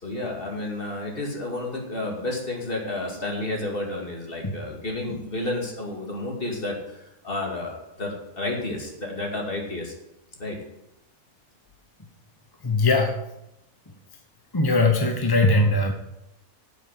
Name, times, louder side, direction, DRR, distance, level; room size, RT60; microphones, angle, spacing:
voice 1, 0.0-9.9 10.4-10.6, left 2 dB, 35° left, 0 dB, 2.6 m, -31 dB
voice 2, 12.6-13.1 14.5-15.9, left 2 dB, 15° left, 4 dB, 0.9 m, -20 dB
9.2 x 8.1 x 7.9 m, 0.86 s
omnidirectional pair, 1.6 m